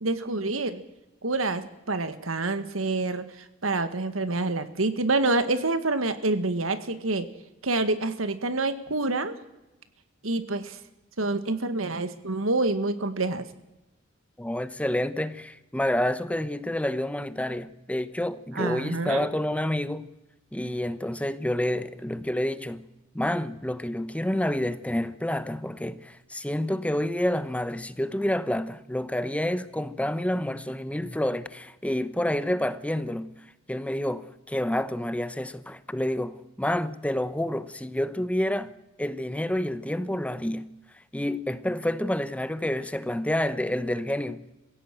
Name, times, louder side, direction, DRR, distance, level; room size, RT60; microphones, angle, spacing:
voice 1, 0.0-0.8 1.2-3.2 3.6-7.3 7.6-9.4 10.2-10.8 11.2-13.5 18.5-19.3, right 2 dB, 85° right, 1.8 m, -27 dB
voice 2, 14.4-20.1 20.5-22.8 23.1-33.3 33.7-38.7 39.0-40.7 41.1-44.4, left 1 dB, 5° left, 0.9 m, -28 dB
22.5 x 16.0 x 9.2 m
head